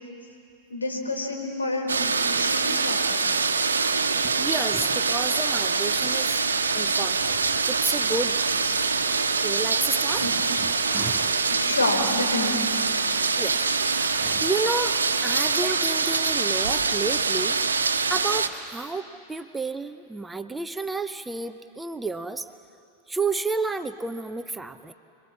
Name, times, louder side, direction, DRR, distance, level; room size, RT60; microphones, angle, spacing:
voice 1, 0.7-3.2 8.6-8.9 10.2-10.3 11.5-12.7, left 2 dB, 80° left, 1 dB, 4.5 m, -29 dB
sound 1, 1.9-18.5, right 4 dB, 75° right, 1.1 m, -24 dB
voice 2, 4.1-6.4 6.7-7.2 7.7-8.4 9.4-11.4 13.4-17.6 18.1-22.5 23.1-24.9, right 3 dB, 10° right, 10 dB, 0.8 m, -31 dB
28.5 x 22.5 x 7.3 m, 2.6 s
figure-of-eight pair, 90°, 0 cm